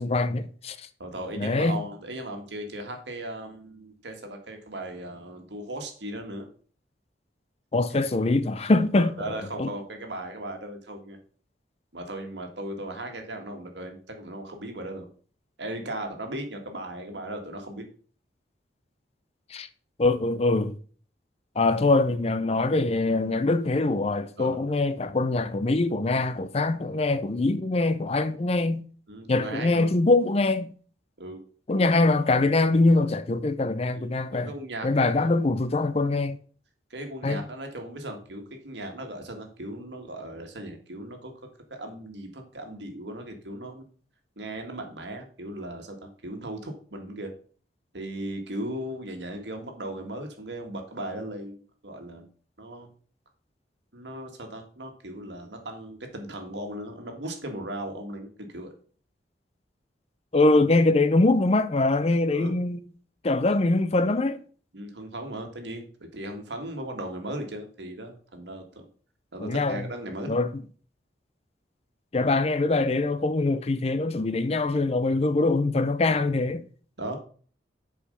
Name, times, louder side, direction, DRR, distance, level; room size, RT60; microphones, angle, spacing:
voice 1, 0.0-0.9 1.4-1.8 7.7-9.7 19.5-19.7 20.0-20.7 21.6-28.8 29.3-30.7 31.7-34.5 34.8-36.4 37.2-37.4 60.3-62.8 63.2-64.4 69.4-69.9 70.2-70.5 72.1-76.6, left 2 dB, 35° left, 0.5 m, -23 dB
voice 2, 1.0-6.5 8.0-8.1 8.9-11.2 11.9-15.1 15.6-17.8 24.4-24.6 29.1-29.9 31.2-31.4 33.9-35.4 36.9-41.3 41.7-43.8 44.4-47.3 47.9-52.3 52.6-52.9 53.9-58.7 62.3-62.6 64.7-68.9 69.3-70.4 77.0-77.2, right 1 dB, 80° right, 1.8 m, -37 dB
7.1 x 5.0 x 5.2 m
head